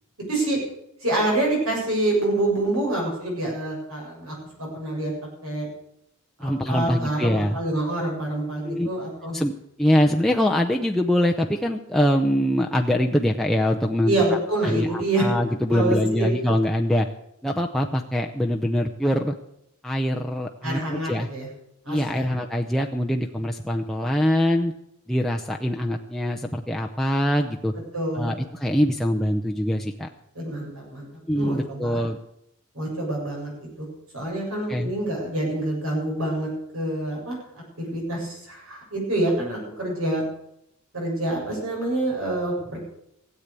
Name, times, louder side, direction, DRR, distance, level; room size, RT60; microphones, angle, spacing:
voice 1, 0.3-0.6 1.0-5.1 5.4-5.7 6.4-9.4 14.0-15.2 15.7-16.3 20.6-21.5 21.9-22.3 27.9-28.4 30.4-31.1 31.3-32.0 32.7-33.9 34.1-37.4 37.8-40.2 40.9-42.8, right 2 dB, 75° right, -1 dB, 7.4 m, -26 dB
voice 2, 6.4-7.6 8.6-8.9 9.3-9.5 9.8-14.1 14.6-17.1 17.4-19.4 19.8-21.3 21.9-24.7 25.1-27.7 28.1-30.1 31.3-32.2 34.7-34.9, equal, ahead, 0 dB, 0.6 m, -23 dB
16.5 x 8.2 x 8.4 m, 0.78 s
head